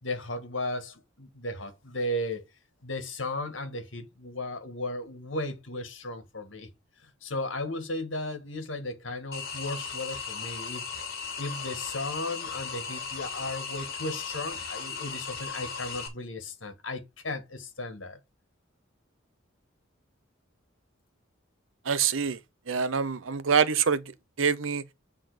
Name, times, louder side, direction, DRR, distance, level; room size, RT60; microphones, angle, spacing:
voice 1, 0.0-2.4 2.8-6.7 7.0-10.8 11.4-18.2, left 1 dB, 70° left, 2.0 m, -35 dB
sound 1, 9.3-16.1, left 5 dB, 50° left, 2.7 m, -37 dB
voice 2, 21.8-22.4 22.7-24.0 24.4-24.8, right 6 dB, 85° right, 0.8 m, -25 dB
8.8 x 3.8 x 5.1 m
head